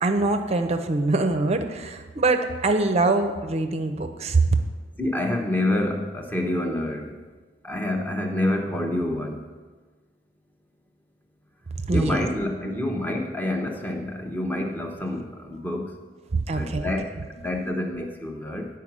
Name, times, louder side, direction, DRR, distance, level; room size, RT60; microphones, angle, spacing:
voice 1, 0.0-4.4 11.9-12.3 16.3-16.9, right 3 dB, 35° right, 7 dB, 0.6 m, -23 dB
voice 2, 5.0-7.2 7.6-9.4 11.9-15.9 16.5-18.7, left 1 dB, 10° left, 2 dB, 0.8 m, -27 dB
9.8 x 4.7 x 6.0 m, 1.4 s
head